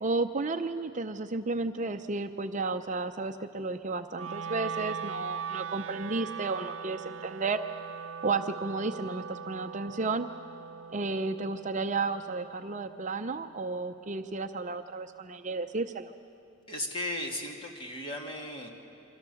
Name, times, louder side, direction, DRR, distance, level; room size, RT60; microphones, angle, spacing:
voice 1, 0.0-7.6 8.2-10.3 10.9-16.1, right 3 dB, 35° right, 7 dB, 0.6 m, -32 dB
Wind instrument woodwind instrument, 4.1-14.3, right 7 dB, 75° right, 0.5 m, -41 dB
voice 2, 16.7-18.7, left 1 dB, 25° left, 1 dB, 2.6 m, -36 dB
27.0 x 24.5 x 7.0 m, 3.0 s
head